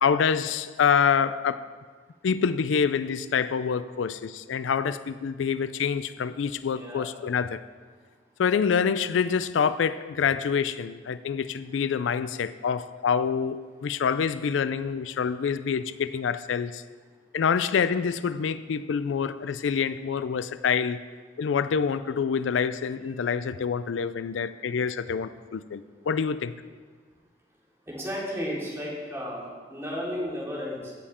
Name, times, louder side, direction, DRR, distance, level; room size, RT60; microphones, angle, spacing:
voice 1, 0.0-1.7 2.2-7.6 8.4-16.8 17.3-21.0 21.4-26.5, left 6 dB, 90° left, 0.4 m, -26 dB
voice 2, 6.7-7.2 27.9-30.9, equal, 15° right, 2.8 m, -33 dB
16.0 x 7.2 x 4.3 m
head